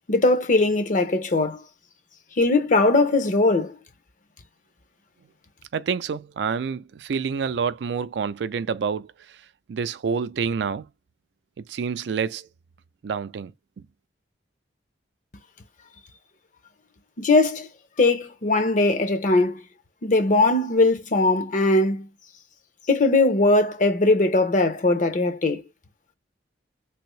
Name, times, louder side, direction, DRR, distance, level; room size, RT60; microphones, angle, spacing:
voice 1, 0.1-1.6 2.4-3.8 17.2-17.7 18.0-19.6 20.0-22.1 22.9-25.6, left 2 dB, 45° left, 0.6 m, -20 dB
voice 2, 5.7-9.1 9.7-10.9 11.6-12.5 13.0-13.5, right 6 dB, 70° right, 0.4 m, -27 dB
3.4 x 2.6 x 3.1 m
head